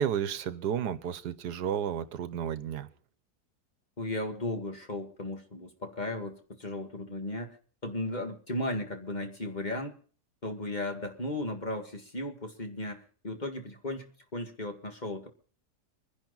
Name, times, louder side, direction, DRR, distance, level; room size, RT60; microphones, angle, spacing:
voice 1, 0.0-2.9, right 8 dB, 85° right, 1.5 m, -32 dB
voice 2, 4.0-7.6 7.8-10.0 10.4-15.3, left 1 dB, 30° left, 2.0 m, -36 dB
25.0 x 10.5 x 4.0 m
omnidirectional pair, 1.7 m